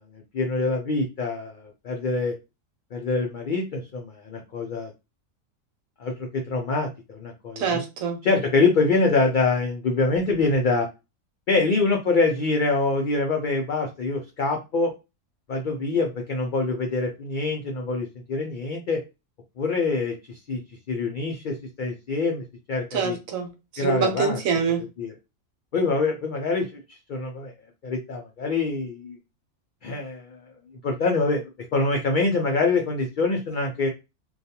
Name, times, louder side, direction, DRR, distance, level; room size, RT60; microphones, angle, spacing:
voice 1, 0.3-2.3 2.9-4.9 6.0-7.8 8.2-10.9 11.5-14.9 15.5-19.0 19.6-20.6 20.9-23.2 23.8-24.4 25.0-25.1 25.7-27.5 27.8-29.2 29.8-30.4 30.8-33.9, left 3 dB, 80° left, 0.4 m, -25 dB
voice 2, 7.6-8.2 22.9-23.5 23.7-24.8, right 5 dB, 90° right, 1.1 m, -25 dB
2.4 x 2.3 x 2.7 m
omnidirectional pair, 1.4 m